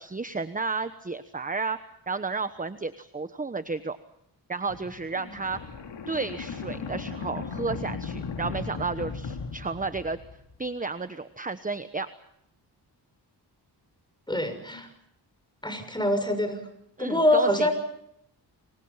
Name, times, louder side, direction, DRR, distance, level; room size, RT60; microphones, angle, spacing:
voice 1, 0.0-1.8 2.1-4.0 4.5-5.6 6.1-10.2 10.6-12.1 17.0-17.7, right 4 dB, 20° right, 11 dB, 1.1 m, -32 dB
sound 1, 4.7-10.5, left 5 dB, 75° left, 3.4 m, -37 dB
voice 2, 14.3-14.9 15.6-16.6 17.0-17.7, left 1 dB, 10° left, 9 dB, 6.4 m, -24 dB
28.5 x 24.0 x 5.7 m, 0.76 s
cardioid pair, 90°, 42 cm